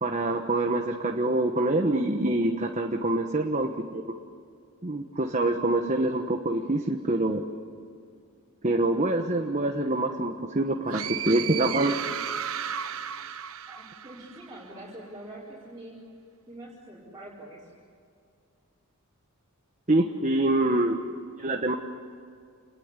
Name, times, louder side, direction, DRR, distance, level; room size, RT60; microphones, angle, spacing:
voice 1, 0.0-4.2 4.8-7.4 8.6-12.0 19.9-21.0 21.4-21.7, right 2 dB, 30° right, 4 dB, 1.2 m, -25 dB
sound 1, 10.9-14.6, right 9 dB, 65° right, 1.0 m, -34 dB
voice 2, 13.7-16.0 16.5-17.7, right 1 dB, 15° right, -7 dB, 4.7 m, -44 dB
28.0 x 20.5 x 9.7 m, 2.3 s
head